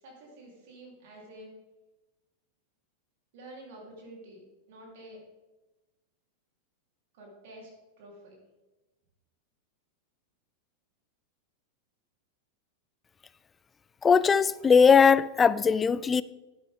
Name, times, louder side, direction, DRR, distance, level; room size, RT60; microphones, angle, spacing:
voice 1, 0.0-1.5 3.3-4.4 4.7-5.2 7.1-7.7 8.0-8.4, right 1 dB, 50° right, 3.5 m, -48 dB
voice 2, 14.0-16.2, left 6 dB, 20° left, 0.3 m, -20 dB
11.5 x 9.5 x 3.6 m
figure-of-eight pair, 90°, 0 cm